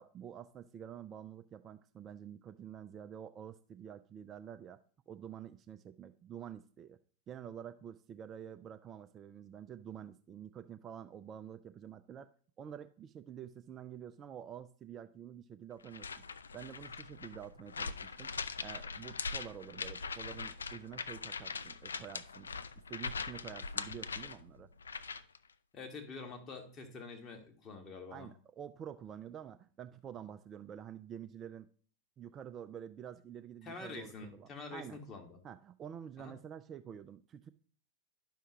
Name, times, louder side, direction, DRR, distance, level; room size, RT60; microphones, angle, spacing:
voice 1, 0.0-4.8 5.1-7.0 7.3-12.3 12.6-16.2 16.5-22.5 22.9-24.7 28.1-31.7 32.2-35.0 35.4-37.5, right 9 dB, 25° right, 10 dB, 0.4 m, -48 dB
sound 1, 15.8-25.4, left 5 dB, 70° left, 0.3 m, -42 dB
voice 2, 25.7-28.3 33.6-35.4 36.2-36.3, left 4 dB, 25° left, 3 dB, 1.6 m, -47 dB
11.0 x 5.7 x 3.0 m, 0.43 s
figure-of-eight pair, 90°, 0 cm